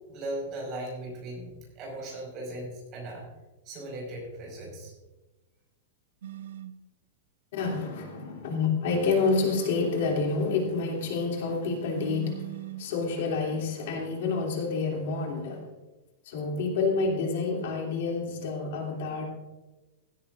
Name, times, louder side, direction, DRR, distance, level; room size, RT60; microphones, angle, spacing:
voice 1, 0.1-3.3 3.6-4.9, right 1 dB, 25° right, -1 dB, 5.2 m, -38 dB
sound 1, 6.2-6.8 9.3-10.3 11.9-12.9, right 13 dB, 80° right, 0.9 m, -40 dB
voice 2, 7.5-12.4 12.8-15.6 16.3-19.3, left 4 dB, 55° left, 0 dB, 2.7 m, -28 dB
16.5 x 14.5 x 2.5 m, 1.1 s
supercardioid pair, 175°, 0 cm